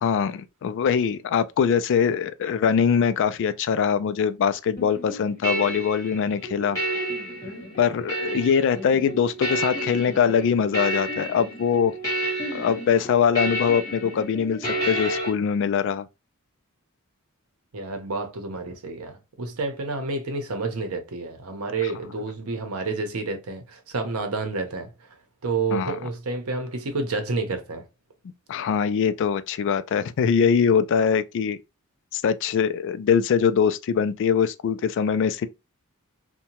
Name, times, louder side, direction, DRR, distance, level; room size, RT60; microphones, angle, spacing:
voice 1, 0.0-6.8 7.8-11.9 12.5-16.1 21.8-21.9 25.7-26.0 28.5-31.6 32.1-35.5, left 7 dB, 55° left, 0.3 m, -22 dB
sound 1, 4.8-15.3, right 1 dB, 15° left, 1.5 m, -30 dB
voice 2, 17.7-24.9 25.4-27.8, right 3 dB, 80° right, 0.7 m, -29 dB
2.7 x 2.2 x 2.9 m
head